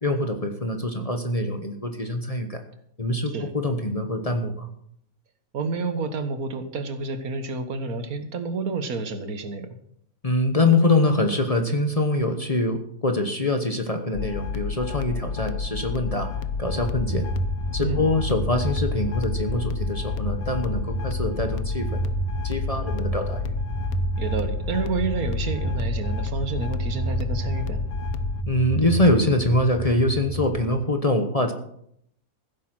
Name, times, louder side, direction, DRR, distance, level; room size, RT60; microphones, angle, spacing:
voice 1, 0.0-2.6 3.0-4.7 10.2-16.3 16.6-17.3 17.7-22.0 22.4-23.5 28.5-31.5, left 2 dB, 25° left, 6 dB, 1.1 m, -24 dB
voice 2, 5.5-9.7 17.8-18.1 24.2-27.8, right 3 dB, 75° right, 9 dB, 1.8 m, -29 dB
sound 1, 14.1-28.4, left 5 dB, 80° left, 1.2 m, -30 dB
sound 2, 16.3-30.6, right 2 dB, 10° left, 3.4 m, -31 dB
15.5 x 8.5 x 6.1 m, 0.72 s
omnidirectional pair, 1.6 m